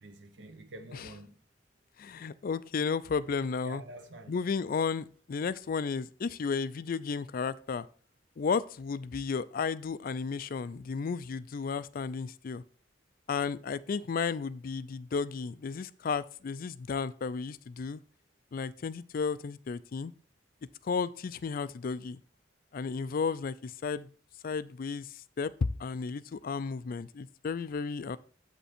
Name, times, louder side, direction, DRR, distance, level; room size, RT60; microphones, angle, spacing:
voice 1, 0.0-1.4 3.6-4.4, right 1 dB, 70° right, 1.0 m, -47 dB
voice 2, 2.0-3.8 4.3-7.9 8.4-12.6 13.3-18.0 18.5-20.1 20.8-22.2 22.7-24.1 24.4-25.5 25.8-28.2, left 5 dB, 50° left, 0.4 m, -33 dB
7.5 x 5.5 x 4.3 m
head